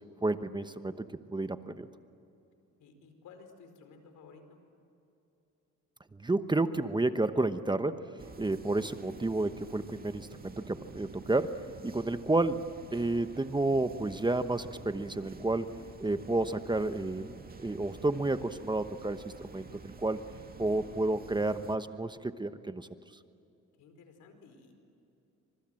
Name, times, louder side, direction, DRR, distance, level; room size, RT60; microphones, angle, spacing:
voice 1, 0.2-1.9 6.2-8.0 8.4-11.5 11.8-12.6 12.9-15.7 16.0-17.3 17.6-19.7 20.0-20.2 20.6-22.9, right 2 dB, 15° right, 10 dB, 1.1 m, -30 dB
voice 2, 2.8-4.6 23.8-24.7, left 4 dB, 85° left, 7 dB, 4.6 m, -54 dB
sound 1, 8.2-21.8, right 3 dB, 30° right, 2.3 m, -50 dB
28.5 x 26.0 x 7.7 m, 2.9 s
cardioid pair, 90°, 30 cm